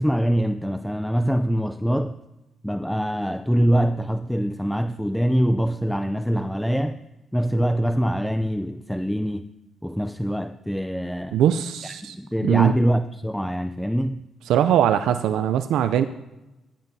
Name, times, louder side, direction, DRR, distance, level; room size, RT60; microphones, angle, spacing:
voice 1, 0.0-2.1 2.6-7.0 7.3-9.4 9.8-11.4 11.8-14.2, equal, ahead, 10 dB, 0.4 m, -24 dB
voice 2, 11.3-12.2 12.4-12.8 14.5-16.1, right 10 dB, 80° right, 10 dB, 0.4 m, -21 dB
16.5 x 11.0 x 2.7 m, 0.98 s
cardioid pair, 90°, 0 cm